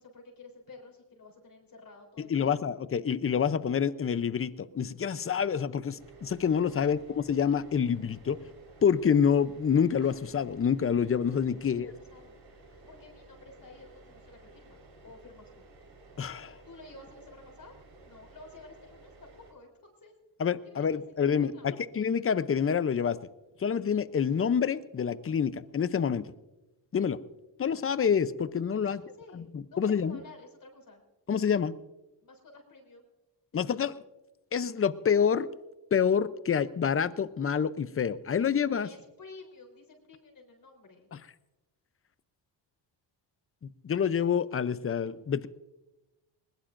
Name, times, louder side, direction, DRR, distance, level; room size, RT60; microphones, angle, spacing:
voice 1, 0.0-2.6 11.6-12.4 12.8-14.8 15.0-15.6 16.6-17.8 18.0-20.1 20.6-21.8 28.8-31.0 32.2-33.1 38.8-41.1, left 3 dB, 45° left, 1 dB, 3.8 m, -52 dB
voice 2, 2.2-8.4 8.8-11.9 16.2-16.6 20.4-23.2 23.6-26.3 26.9-27.2 27.6-29.0 29.3-30.2 31.3-31.8 33.5-34.0 34.5-35.5 35.9-38.9 43.8-45.5, left 7 dB, 30° left, 15 dB, 0.6 m, -27 dB
sound 1, 6.0-19.5, right 2 dB, 70° right, 4.7 m, -54 dB
20.5 x 20.5 x 2.6 m, 1.0 s
cardioid pair, 100°, 45 cm